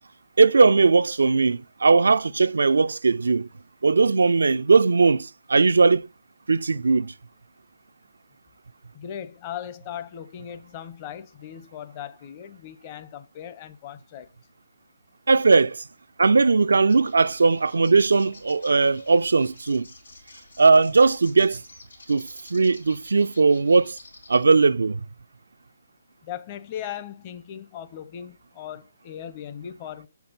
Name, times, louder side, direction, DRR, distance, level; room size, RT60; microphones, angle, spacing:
voice 1, 0.4-3.5 3.8-6.1 6.5-7.1 15.3-15.9 16.2-19.9 20.6-21.6 22.1-24.0 24.3-25.0, right 4 dB, 75° right, 0.3 m, -19 dB
voice 2, 8.9-14.3 26.2-30.1, left 10 dB, 35° left, 0.8 m, -38 dB
sound 1, 16.9-24.4, left 3 dB, 85° left, 3.9 m, -50 dB
7.9 x 5.9 x 4.1 m
figure-of-eight pair, 140°, 0 cm